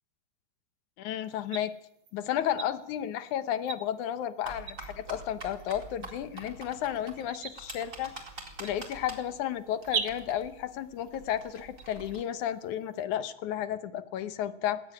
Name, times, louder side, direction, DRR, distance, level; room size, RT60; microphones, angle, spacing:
voice 1, 1.0-1.7 2.1-8.1 8.6-14.9, left 10 dB, 70° left, 12 dB, 2.0 m, -33 dB
sound 1, 1.2-13.0, right 7 dB, 45° right, 1.6 m, -43 dB
sound 2, 4.4-12.2, right 2 dB, 20° right, 4.1 m, -46 dB
18.5 x 18.0 x 9.7 m, 0.77 s
omnidirectional pair, 4.3 m